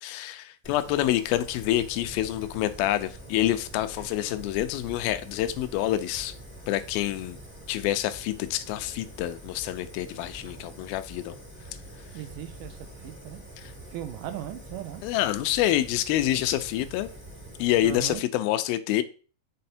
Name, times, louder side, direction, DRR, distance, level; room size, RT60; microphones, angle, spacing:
voice 1, 0.0-6.3 6.7-7.4 7.7-11.4 15.0-17.1 17.6-19.0, left 13 dB, 85° left, 2.4 m, -27 dB
Fire, 0.6-18.1, right 1 dB, 5° right, 0.8 m, -45 dB
voice 2, 12.1-13.4 13.9-15.0 17.8-18.2, right 12 dB, 80° right, 2.1 m, -38 dB
6.4 x 4.1 x 4.3 m
omnidirectional pair, 4.3 m